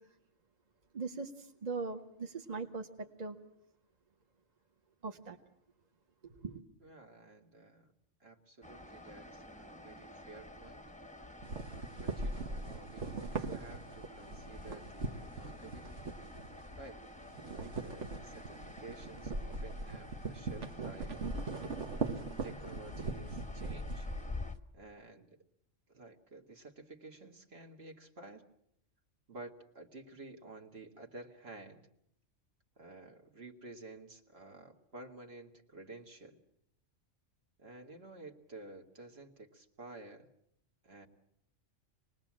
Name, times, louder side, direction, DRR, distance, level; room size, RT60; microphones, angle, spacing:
voice 1, 0.9-3.4 5.0-5.4 6.2-6.6, right 4 dB, 35° right, 4 dB, 1.2 m, -40 dB
voice 2, 6.8-7.9 8.2-10.8 11.7-16.0 16.8-17.0 17.5-21.2 21.9-24.1 24.7-25.4 25.9-28.5 29.3-31.9 32.8-36.4 37.6-40.3 40.8-41.1, right 2 dB, 55° right, 4 dB, 2.0 m, -52 dB
sound 1, 8.6-24.6, left 2 dB, 5° left, 0.8 m, -49 dB
sound 2, 11.4-16.9 17.2-24.6, right 3 dB, 70° right, 1.6 m, -40 dB
26.5 x 20.0 x 7.4 m, 0.73 s
omnidirectional pair, 1.3 m